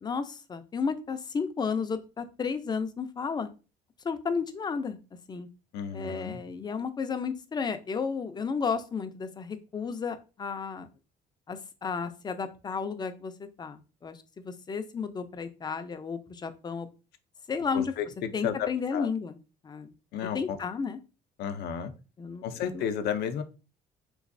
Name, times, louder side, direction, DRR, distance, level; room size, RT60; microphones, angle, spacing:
voice 1, 0.0-3.5 4.0-5.0 5.3-5.5 5.9-10.9 11.5-16.9 17.5-17.9 18.3-19.4 19.6-19.9 20.3-21.0 22.2-22.9, left 5 dB, 25° left, 9 dB, 0.4 m, -33 dB
voice 2, 5.7-6.4 17.7-19.1 20.1-20.6 21.4-21.9 22.4-23.4, left 8 dB, 75° left, 8 dB, 0.5 m, -32 dB
3.4 x 3.0 x 2.5 m, 0.32 s
cardioid pair, 110°, 17 cm